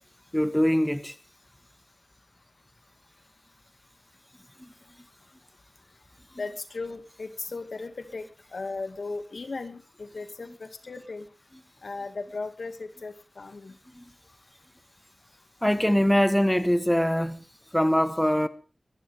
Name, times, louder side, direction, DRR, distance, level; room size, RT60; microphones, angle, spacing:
voice 1, 0.3-1.1 4.6-4.7 14.0-14.1 15.6-17.4 17.7-18.5, equal, 5° left, 1.3 m, -23 dB
voice 2, 6.4-11.3 11.8-13.8, left 3 dB, 75° left, 2.2 m, -37 dB
23.5 x 12.0 x 3.6 m
wide cardioid pair, 85°, 0 cm